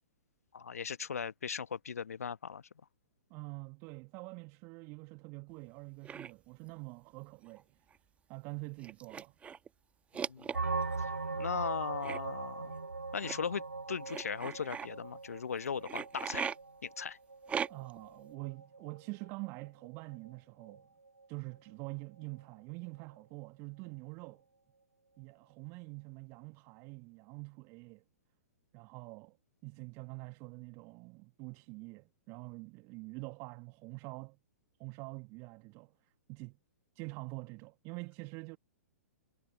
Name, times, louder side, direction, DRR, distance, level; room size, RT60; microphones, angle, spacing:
voice 1, 0.5-2.6 10.2-10.6 11.0-11.1 11.3-12.8 13.1-13.6 13.9-16.5 16.8-17.2, left 6 dB, 70° left, 1.1 m, -38 dB
voice 2, 3.3-7.7 8.3-9.3 17.7-20.9 21.3-24.4 25.2-28.0 28.7-29.4 29.6-34.4 34.8-36.6 36.9-38.6, right 30 dB, 35° right, 1.6 m, -46 dB
sound 1, 6.0-6.3 7.5-7.6 7.9-8.0 8.8-9.7 10.1-11.0 12.0-12.2 13.2-13.3 14.1-14.9 15.8-16.6 17.5-18.0, right 7 dB, 15° right, 1.2 m, -38 dB
sound 2, 10.5-19.9 20.1-20.3 20.6-20.8 21.1-21.3, right 3 dB, 85° right, 4.8 m, -41 dB
figure-of-eight pair, 115°, 8 cm